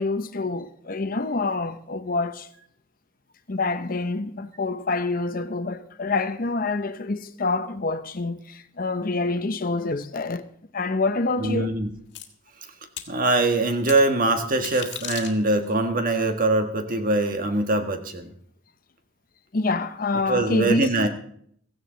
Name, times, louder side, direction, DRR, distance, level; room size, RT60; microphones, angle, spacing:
voice 1, 0.0-2.5 3.5-10.5 10.7-11.7 19.5-21.1, left 3 dB, 45° left, 0.8 m, -26 dB
voice 2, 11.4-11.9 13.1-18.3 20.3-21.1, right 2 dB, 45° right, 1.6 m, -23 dB
sound 1, 12.1-12.2 13.0-13.1 13.9-14.0 14.5-15.7, left 10 dB, 65° left, 1.7 m, -35 dB
15.5 x 15.5 x 3.9 m
head